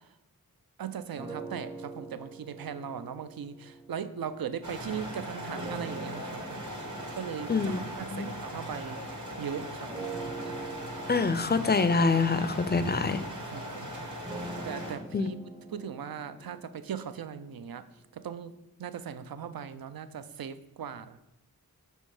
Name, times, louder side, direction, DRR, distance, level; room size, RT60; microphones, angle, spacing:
voice 1, 0.8-6.7 7.1-9.0 9.4-10.1 13.5-13.9 14.4-15.4 15.7-17.8 18.1-21.2, right 7 dB, 70° right, 12 dB, 0.5 m, -39 dB
sound 1, 1.2-4.7 5.5-9.3 9.9-17.8, right 3 dB, 15° right, 0.6 m, -44 dB
sound 2, 4.6-15.0, equal, 55° right, 1.3 m, -39 dB
voice 2, 11.1-13.2 15.1-15.3, left 4 dB, 30° left, 12 dB, 0.4 m, -25 dB
6.3 x 3.3 x 4.9 m, 0.93 s
wide cardioid pair, 50°, 37 cm